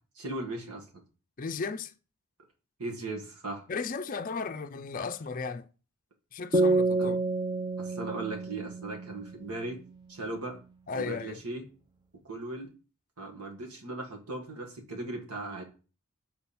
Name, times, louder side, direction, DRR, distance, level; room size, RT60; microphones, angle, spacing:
voice 1, 0.1-0.8 2.8-3.7 7.0-7.1 7.8-9.8 10.1-10.6 10.9-11.6 12.2-12.7 13.2-15.6, right 2 dB, 85° right, 1.7 m, -38 dB
voice 2, 1.4-1.9 3.7-5.7 6.3-7.2 10.9-11.4, left 4 dB, 40° left, 0.5 m, -35 dB
sound 1, 6.5-10.0, right 2 dB, 20° right, 0.5 m, -29 dB
7.2 x 4.3 x 4.2 m
head